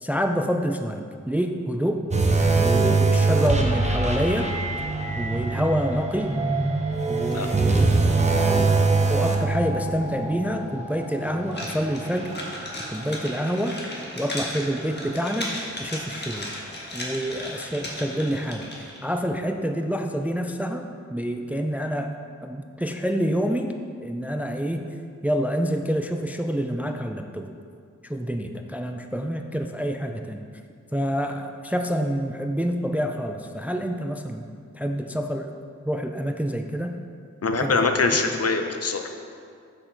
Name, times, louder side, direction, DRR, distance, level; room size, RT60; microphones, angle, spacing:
voice 1, 0.0-2.1 2.6-4.5 5.1-6.3 7.1-8.0 8.4-8.8 9.1-12.3 12.9-13.8 14.2-16.5 16.9-20.8 21.1-22.1 22.4-24.8 25.2-27.5 28.0-30.5 30.9-34.5 34.7-35.5 35.8-37.0 37.5-37.9, equal, 5° right, 5 dB, 0.4 m, -27 dB
sound 1, 2.1-13.6 13.9-14.1 14.7-14.8, right 3 dB, 25° right, 0.8 m, -24 dB
sound 2, 11.5-19.0, left 1 dB, 35° left, 1.5 m, -36 dB
voice 2, 37.4-39.1, left 4 dB, 55° left, 5 dB, 0.7 m, -23 dB
7.4 x 6.5 x 4.5 m, 2.2 s
wide cardioid pair, 100°, 29 cm